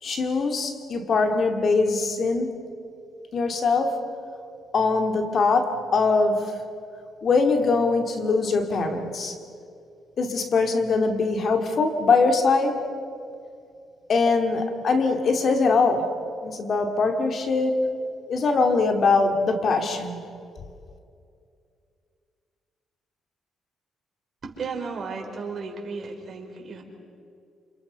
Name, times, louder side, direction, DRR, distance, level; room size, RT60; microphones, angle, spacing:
voice 1, 0.0-2.6 3.3-4.0 4.7-6.5 7.2-9.4 10.2-12.8 14.1-16.1 16.4-17.9 18.3-20.2, left 4 dB, 50° left, 5 dB, 2.5 m, -22 dB
voice 2, 24.4-26.8, right 4 dB, 45° right, 1 dB, 5.0 m, -34 dB
28.0 x 27.5 x 5.7 m, 2.4 s
cardioid pair, 90°, 0 cm